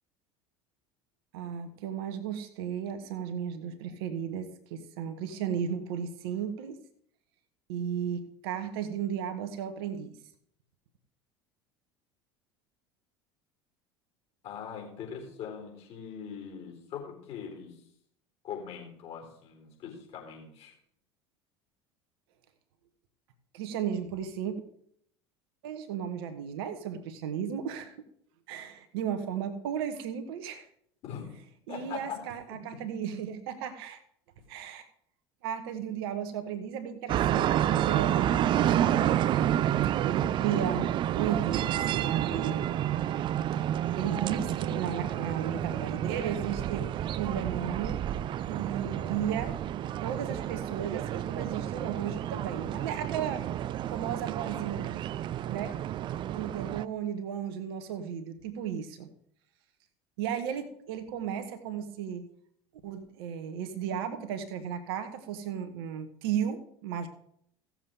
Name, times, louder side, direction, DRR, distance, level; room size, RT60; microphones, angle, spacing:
voice 1, 1.3-6.8 7.7-10.2 23.5-24.6 25.6-28.0 28.5-30.7 31.7-34.0 34.5-34.9 35.4-39.3 40.1-42.7 44.0-48.0 48.5-49.6 50.0-53.5 53.9-54.9 55.5-55.8 56.2-59.1 60.2-62.2 62.8-67.1, right 8 dB, 60° right, 9 dB, 1.2 m, -35 dB
voice 2, 14.4-17.8 18.4-20.7 31.0-31.3 31.7-32.6, left 7 dB, 45° left, 0 dB, 4.2 m, -41 dB
sound 1, 37.1-56.9, right 11 dB, 35° right, 0.4 m, -30 dB
16.0 x 7.4 x 3.6 m, 0.69 s
figure-of-eight pair, 65°, 14 cm